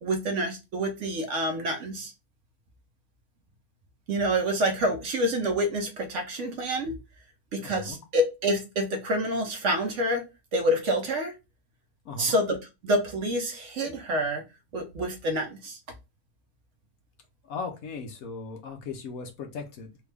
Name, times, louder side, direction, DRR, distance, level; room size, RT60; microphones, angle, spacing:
voice 1, 0.0-2.1 4.1-6.9 7.5-10.3 10.5-11.3 12.2-14.4 14.7-15.8, equal, 60° right, 4 dB, 0.9 m, -27 dB
voice 2, 7.5-8.0 12.0-12.4 17.4-20.0, left 4 dB, 70° left, 5 dB, 1.1 m, -38 dB
3.5 x 2.3 x 3.3 m, 0.26 s
omnidirectional pair, 1.6 m